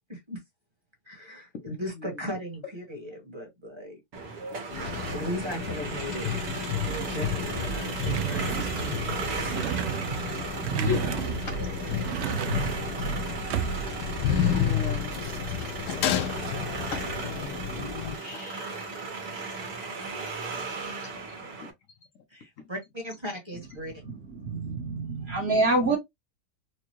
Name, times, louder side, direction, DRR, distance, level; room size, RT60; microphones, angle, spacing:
voice 1, 0.1-0.4 1.0-4.0 4.8-9.5 22.3-24.0, equal, 20° right, 1.2 m, -38 dB
sound 1, 4.1-21.7, right 4 dB, 65° right, 1.5 m, -36 dB
sound 2, 4.7-18.2, left 7 dB, 85° left, 1.2 m, -31 dB
sound 3, 8.1-14.1, right 9 dB, 90° right, 0.6 m, -33 dB
voice 2, 10.6-11.6 13.7-14.1 14.4-15.2 15.6-16.2 16.8-17.1 18.2-19.2 20.5-20.6 21.0-21.2 21.6-21.7, left 4 dB, 60° left, 1.1 m, -38 dB
voice 3, 24.4-26.0, right 2 dB, 45° right, 1.3 m, -26 dB
4.4 x 2.3 x 2.9 m
omnidirectional pair, 1.7 m